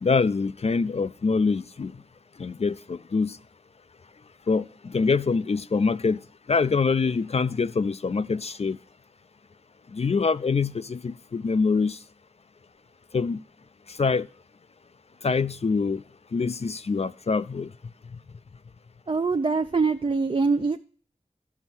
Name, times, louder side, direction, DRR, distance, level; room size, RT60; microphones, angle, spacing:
voice 1, 0.0-1.9 2.4-3.4 4.5-6.2 6.5-8.8 9.9-12.0 13.1-13.4 13.9-14.3 15.2-16.0 16.3-17.7, left 4 dB, 55° left, 0.4 m, -25 dB
voice 2, 19.1-20.8, right 4 dB, 40° right, 0.5 m, -23 dB
11.5 x 5.6 x 6.1 m
wide cardioid pair, 45°, 13 cm